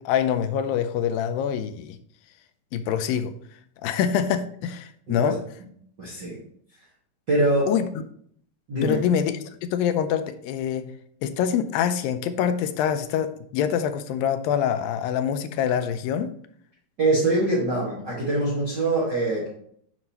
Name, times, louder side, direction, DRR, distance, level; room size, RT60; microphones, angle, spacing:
voice 1, 0.0-2.0 2.7-3.3 3.8-5.4 7.7-7.9 8.8-9.3 9.6-10.9 11.2-16.3, left 8 dB, 85° left, 10 dB, 2.3 m, -25 dB
voice 2, 6.0-6.4 7.3-7.7 8.7-9.0 17.0-19.5, right 2 dB, 45° right, -6 dB, 1.6 m, -23 dB
7.7 x 5.4 x 2.9 m, 0.64 s
omnidirectional pair, 4.1 m